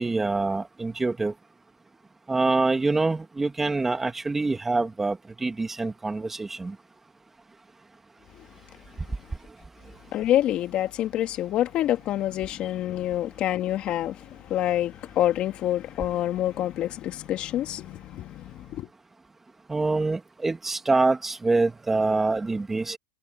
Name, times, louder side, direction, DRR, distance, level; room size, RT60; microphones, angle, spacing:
voice 1, 0.0-1.3 2.3-6.7 19.7-23.0, right 3 dB, 10° right, 2.3 m, -25 dB
voice 2, 10.1-14.2 14.5-18.9, left 13 dB, 35° left, 3.0 m, -27 dB
supercardioid pair, 140°, 3 cm